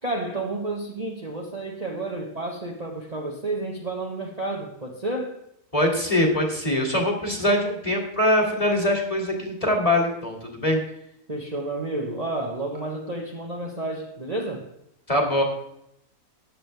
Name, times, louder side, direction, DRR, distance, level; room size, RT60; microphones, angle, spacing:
voice 1, 0.0-5.4 11.3-14.7, right 2 dB, 25° right, 0 dB, 1.3 m, -31 dB
voice 2, 5.7-10.8 15.1-15.4, left 1 dB, 20° left, 1 dB, 2.6 m, -23 dB
14.0 x 10.0 x 3.4 m, 0.80 s
omnidirectional pair, 1.6 m